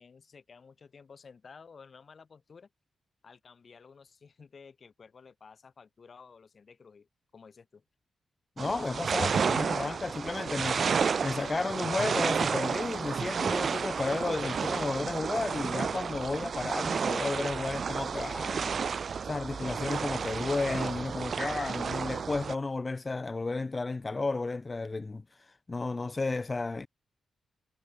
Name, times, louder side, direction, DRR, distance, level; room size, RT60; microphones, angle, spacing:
voice 1, 0.0-2.7 3.2-7.8, left 5 dB, 45° left, 4.4 m, -53 dB
voice 2, 8.6-26.9, left 3 dB, 25° left, 0.4 m, -33 dB
sound 1, 8.6-22.5, right 6 dB, 55° right, 0.3 m, -31 dB
cardioid pair, 95°, 0 cm